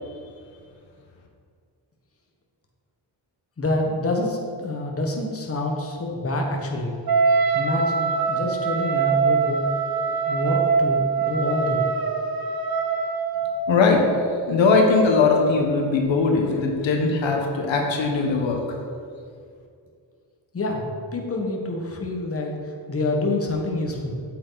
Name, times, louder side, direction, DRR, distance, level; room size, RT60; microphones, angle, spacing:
voice 1, 3.6-7.0 7.5-9.7 10.3-11.8 20.5-24.2, left 2 dB, 30° left, 0 dB, 1.6 m, -27 dB
Wind instrument woodwind instrument, 7.1-13.7, right 5 dB, 55° right, 1.0 m, -23 dB
voice 2, 13.7-14.0 14.5-18.6, left 4 dB, 85° left, 1 dB, 1.4 m, -20 dB
8.5 x 8.4 x 4.1 m, 2.2 s
cardioid pair, 100°, 44 cm